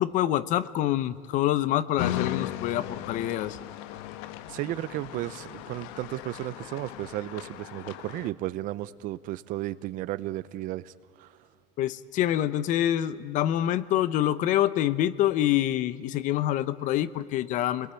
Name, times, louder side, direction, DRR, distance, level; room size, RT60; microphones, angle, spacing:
voice 1, 0.0-3.6 11.8-17.9, left 12 dB, 40° left, 17 dB, 0.6 m, -26 dB
sound 1, 2.0-8.3, left 12 dB, 80° left, 1.1 m, -37 dB
voice 2, 4.5-11.4, right 15 dB, 45° right, 17 dB, 0.6 m, -34 dB
28.5 x 21.0 x 8.9 m, 2.3 s
cardioid pair, 180°, 20 cm